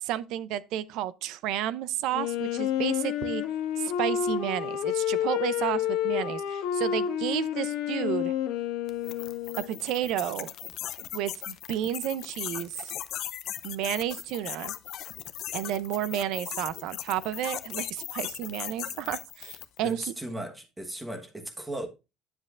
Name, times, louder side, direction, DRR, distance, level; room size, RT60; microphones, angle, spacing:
voice 1, 0.0-3.4 3.8-8.3 9.7-10.5 11.1-12.9 13.6-14.7 15.5-20.1, right 12 dB, 65° right, 0.6 m, -31 dB
Wind instrument woodwind instrument, 2.1-9.8, left 10 dB, 90° left, 1.5 m, -29 dB
sound 1, 8.9-19.8, left 12 dB, 50° left, 0.6 m, -38 dB
voice 2, 19.8-21.9, right 1 dB, 10° right, 1.2 m, -36 dB
9.7 x 7.4 x 2.5 m
cardioid pair, 170°, 0 cm